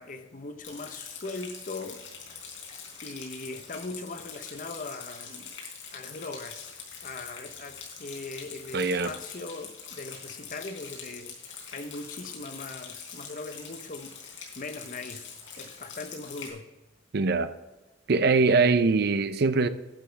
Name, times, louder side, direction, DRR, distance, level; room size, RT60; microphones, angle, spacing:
voice 1, 0.0-2.0 3.0-5.5 5.9-6.7 7.0-11.4 11.7-16.7, left 3 dB, 45° left, 0.8 m, -40 dB
Rain, 0.6-16.5, left 6 dB, 80° left, 3.9 m, -44 dB
voice 2, 8.7-9.1 17.1-17.5 18.1-19.7, right 4 dB, 60° right, 0.6 m, -22 dB
12.0 x 10.0 x 3.4 m
head